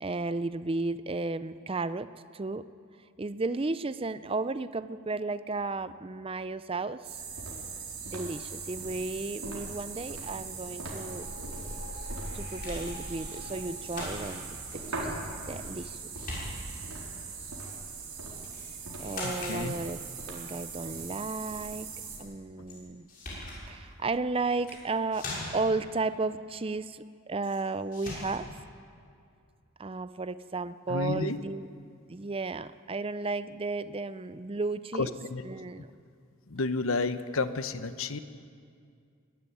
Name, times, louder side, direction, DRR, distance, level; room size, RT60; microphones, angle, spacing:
voice 1, 0.0-2.7 3.2-7.2 8.0-11.3 12.3-14.4 14.7-15.1 15.5-16.0 19.0-20.0 20.3-21.9 22.2-23.1 23.7-28.5 29.8-31.7 32.1-35.1 35.5-35.9, right 3 dB, 25° right, 14 dB, 0.5 m, -33 dB
sound 1, 7.0-22.2, right 3 dB, 85° right, 4.4 m, -40 dB
sound 2, 9.6-17.1, left 1 dB, 90° left, 6.8 m, -49 dB
sound 3, 12.6-12.9 13.8-14.4 15.4-15.9 16.2-16.9 18.5-18.7 19.0-19.6 22.7-22.8 23.1-23.6 24.5-24.8 25.1-25.7 27.4-27.6 27.9-28.4, left 1 dB, 40° left, 6.5 m, -40 dB
voice 2, 18.8-19.7 30.9-31.4 34.9-35.4 35.8-35.9 36.5-38.2, left 3 dB, 65° left, 12 dB, 0.9 m, -31 dB
21.5 x 12.5 x 10.0 m, 2.3 s
head